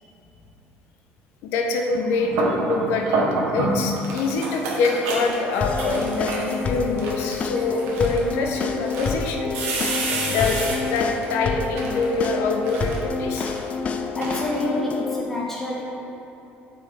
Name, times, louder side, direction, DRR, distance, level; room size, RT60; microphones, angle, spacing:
voice 1, 1.4-3.3 3.5-9.5 10.3-13.5, left 3 dB, 75° left, 2 dB, 1.0 m, -25 dB
sound 1, 2.0-3.9 4.2-6.7 7.4-7.9 8.5-8.6 9.5-10.8, right 2 dB, 90° right, 1.6 m, -26 dB
sound 2, 3.7-4.4 4.9-5.4 5.9-6.6 7.0-7.4 7.8-8.3 8.8-9.2 9.6-10.3 10.8-11.4 11.7-12.3 12.6-13.1 13.3-13.7 14.2-14.6, right 3 dB, 70° right, 1.6 m, -40 dB
sound 3, 5.6-15.2, left 4 dB, 35° left, 0.5 m, -28 dB
voice 2, 14.2-15.8, left 1 dB, 10° left, -5 dB, 1.4 m, -28 dB
8.2 x 6.2 x 3.8 m, 3.0 s
cardioid pair, 140°, 4 cm